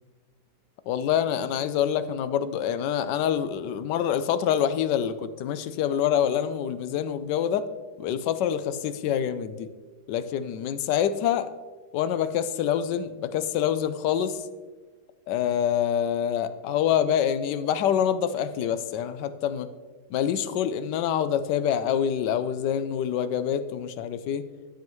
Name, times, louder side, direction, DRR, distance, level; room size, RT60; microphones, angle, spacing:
voice 1, 0.9-7.7 8.0-9.7 10.1-11.5 11.9-14.4 15.3-19.7 20.1-24.5, left 9 dB, 85° left, 12 dB, 1.2 m, -26 dB
13.0 x 7.0 x 3.1 m, 1.4 s
omnidirectional pair, 1.8 m